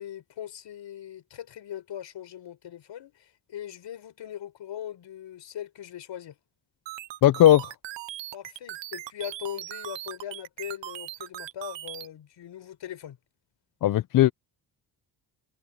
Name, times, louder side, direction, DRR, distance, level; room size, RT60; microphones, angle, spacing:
voice 1, 0.0-6.4 8.3-13.2, left 10 dB, 70° left, 5.1 m, -40 dB
sound 1, 6.9-12.1, right 15 dB, 70° right, 0.8 m, -39 dB
voice 2, 7.2-7.7 13.8-14.3, left 12 dB, 50° left, 0.5 m, -18 dB
cardioid pair, 90°, 45 cm